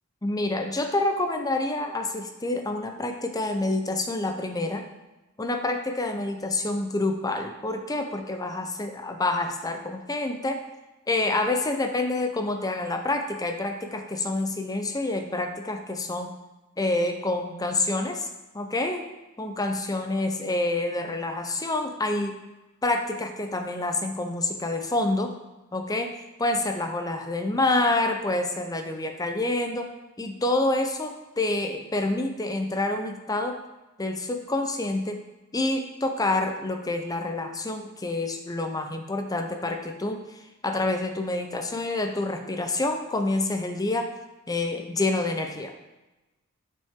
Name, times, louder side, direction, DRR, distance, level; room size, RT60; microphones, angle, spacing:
voice 1, 0.2-4.8 5.4-10.6 11.1-16.3 16.8-19.0 19.4-22.4 22.8-25.3 25.7-26.1 26.4-29.9 30.2-33.6 34.0-35.2 35.5-40.2 40.6-44.1 44.5-45.7, left 2 dB, 20° left, 5 dB, 0.6 m, -27 dB
7.3 x 6.0 x 3.7 m, 1.1 s
head